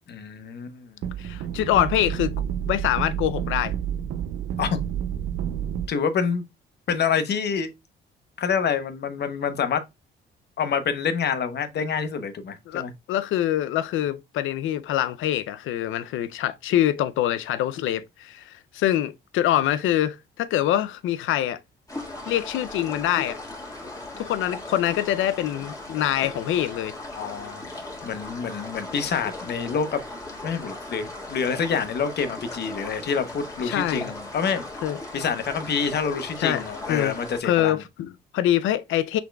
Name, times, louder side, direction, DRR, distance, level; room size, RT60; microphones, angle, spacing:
voice 1, 0.1-1.0 4.6-4.8 5.9-6.4 6.9-7.7 8.4-9.8 10.6-12.9 27.1-27.6 28.0-30.0 30.4-34.6 35.1-37.8, left 6 dB, 55° left, 0.9 m, -27 dB
sound 1, 1.0-5.9, right 9 dB, 80° right, 0.6 m, -29 dB
voice 2, 1.2-2.3 2.7-3.7 12.7-21.6 22.3-23.4 24.2-26.9 33.6-34.1 34.8-35.0 36.4-36.6 36.9-37.1 37.4-39.2, left 12 dB, 80° left, 0.5 m, -25 dB
sound 2, 21.9-37.4, left 2 dB, 15° left, 1.8 m, -38 dB
5.8 x 3.9 x 2.3 m
cardioid pair, 90°, 20 cm